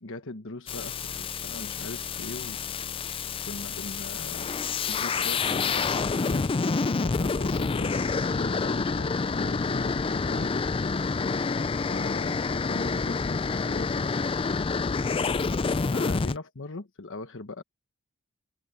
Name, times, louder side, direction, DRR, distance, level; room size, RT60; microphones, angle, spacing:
voice 1, 0.0-2.7 3.4-10.5 11.9-14.1 15.8-17.6, left 2 dB, 60° left, 1.2 m, -40 dB
sound 1, 0.7-16.4, left 4 dB, 25° left, 0.4 m, -28 dB
head